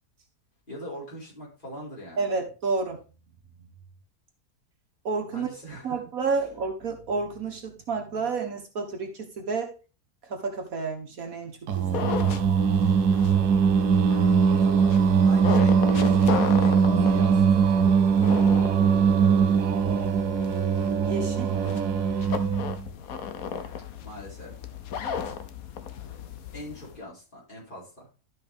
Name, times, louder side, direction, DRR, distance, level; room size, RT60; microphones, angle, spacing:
voice 1, 0.7-2.3 5.3-6.0 13.1-13.6 14.6-17.7 24.0-24.5 26.5-28.1, equal, 30° left, -6 dB, 4.8 m, -41 dB
voice 2, 2.2-3.0 5.0-5.5 5.8-9.7 10.3-12.2 21.0-21.5, right 4 dB, 60° right, 2 dB, 1.7 m, -30 dB
sound 1, 11.7-27.0, left 7 dB, 65° left, 1.3 m, -35 dB
Singing, 11.7-22.8, right 6 dB, 85° right, 1.3 m, -21 dB
12.5 x 5.3 x 3.5 m, 0.33 s
omnidirectional pair, 1.7 m